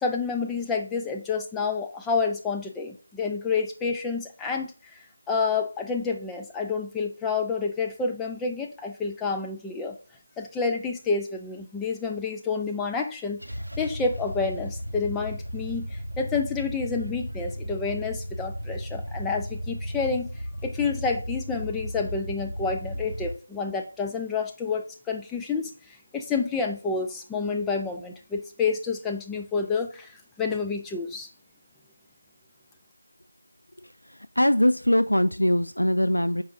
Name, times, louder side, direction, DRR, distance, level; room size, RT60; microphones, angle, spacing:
voice 1, 0.0-5.0 5.3-10.0 10.4-13.4 13.8-15.9 16.2-20.3 20.6-30.1 30.4-31.3, left 4 dB, 5° left, 2 dB, 0.5 m, -29 dB
sound 1, 13.4-23.4, equal, 90° right, 0.5 m, -35 dB
voice 2, 34.4-36.4, left 1 dB, 90° left, 12 dB, 0.4 m, -21 dB
9.1 x 4.7 x 2.7 m, 0.39 s
figure-of-eight pair, 165°, 0 cm